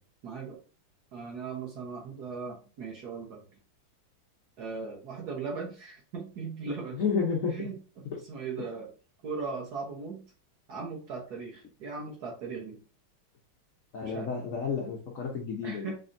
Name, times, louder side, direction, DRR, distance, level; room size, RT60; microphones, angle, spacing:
voice 1, 0.2-0.6 1.1-3.4 4.6-7.0 7.5-7.8 8.1-8.9 9.2-10.3 10.7-12.8 14.1-14.3 15.6-16.0, right 4 dB, 55° right, -1 dB, 1.3 m, -38 dB
voice 2, 6.9-7.7 8.0-8.2 13.9-15.9, left 5 dB, 75° left, 0 dB, 0.7 m, -31 dB
5.1 x 2.5 x 2.6 m, 0.36 s
omnidirectional pair, 2.4 m